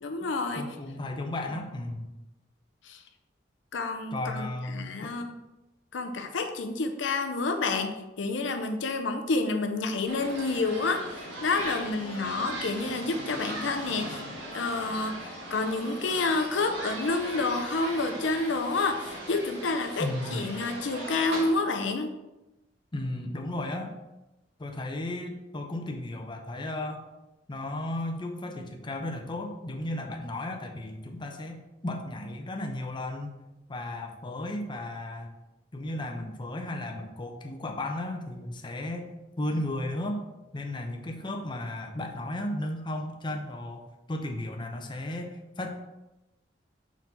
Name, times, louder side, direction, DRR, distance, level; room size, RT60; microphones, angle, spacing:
voice 1, 0.0-0.7 2.8-3.0 3.7-5.3 5.9-14.2 14.5-22.1, left 3 dB, 70° left, 6 dB, 0.6 m, -29 dB
voice 2, 0.5-2.1 4.1-5.2 20.0-20.5 22.9-23.9 24.6-27.1 27.5-33.4 33.7-35.3 35.7-40.2 40.5-45.7, left 1 dB, 25° left, 3 dB, 0.6 m, -34 dB
sound 1, 10.1-21.5, right 1 dB, 85° right, 1.8 m, -39 dB
5.9 x 4.4 x 4.0 m, 0.98 s
head